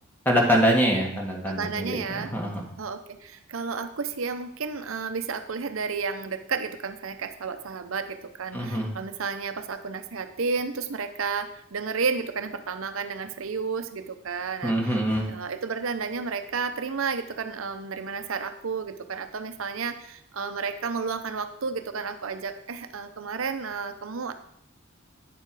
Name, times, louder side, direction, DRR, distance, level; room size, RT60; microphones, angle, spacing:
voice 1, 0.2-2.6 8.5-8.9 14.6-15.3, equal, 10° left, -1 dB, 1.7 m, -24 dB
voice 2, 1.5-2.3 2.8-15.0 15.3-24.3, right 5 dB, 85° right, 9 dB, 0.7 m, -32 dB
9.3 x 6.8 x 4.8 m, 0.72 s
head